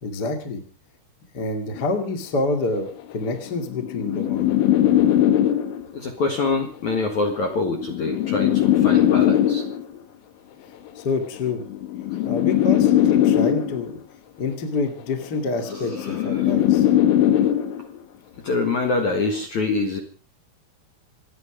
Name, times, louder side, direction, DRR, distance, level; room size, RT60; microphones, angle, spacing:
voice 1, 0.0-0.6 1.3-4.5 10.9-11.6 12.2-14.0 14.4-16.9, left 3 dB, 35° left, 7 dB, 1.7 m, -27 dB
sound 1, 1.8-2.0 2.9-6.0 7.0-10.0 11.0-14.0 15.0-18.0 19.0-19.4, left 11 dB, 85° left, 4.0 m, -20 dB
voice 2, 5.9-9.6 15.7-16.5 18.4-20.0, left 3 dB, 55° left, 4 dB, 2.3 m, -25 dB
27.5 x 9.7 x 5.0 m, 0.38 s
omnidirectional pair, 5.4 m